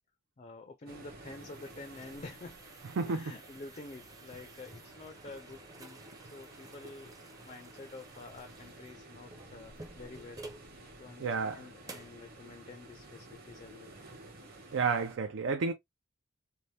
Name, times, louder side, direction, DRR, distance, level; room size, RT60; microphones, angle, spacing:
voice 1, 0.4-2.7 3.0-10.5 11.0-13.9, left 3 dB, 35° left, 0.4 m, -49 dB
sound 1, 0.9-10.7 11.2-11.3 11.8-12.2, right 2 dB, 20° right, 0.6 m, -53 dB
sound 2, 0.9-15.1, right 2 dB, 50° right, 1.1 m, -53 dB
voice 2, 3.0-3.3 11.2-11.6 14.7-15.7, right 4 dB, 75° right, 0.4 m, -31 dB
2.7 x 2.1 x 3.2 m
head